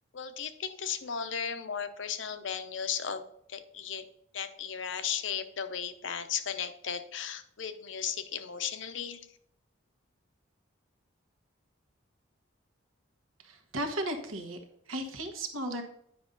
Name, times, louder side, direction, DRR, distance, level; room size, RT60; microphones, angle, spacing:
voice 1, 0.1-3.2 3.5-4.1 4.3-9.3, left 7 dB, 65° left, 10 dB, 0.7 m, -35 dB
voice 2, 13.4-14.6 14.9-15.8, right 1 dB, 90° right, 5 dB, 1.3 m, -35 dB
9.4 x 5.3 x 3.9 m, 0.72 s
head